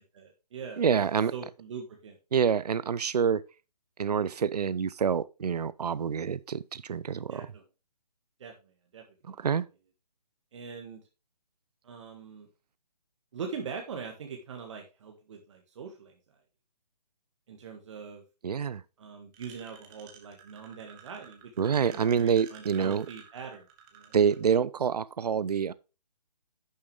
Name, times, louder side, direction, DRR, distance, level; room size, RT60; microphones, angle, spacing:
voice 1, 0.1-1.1 1.3-2.2 7.3-7.6 8.4-8.5 8.9-9.4 10.5-11.0 11.8-12.5 13.3-16.2 17.5-18.2 19.0-21.5 21.8-23.7 23.9-24.1, right 6 dB, 45° right, 1.7 m, -42 dB
voice 2, 0.8-1.3 2.3-3.4 4.0-7.5 9.3-9.7 18.4-18.8 21.6-23.1 24.1-25.7, right 7 dB, 70° right, 0.6 m, -27 dB
sound 1, 19.3-24.4, right 9 dB, 20° right, 1.5 m, -52 dB
11.0 x 6.7 x 3.4 m
figure-of-eight pair, 140°, 21 cm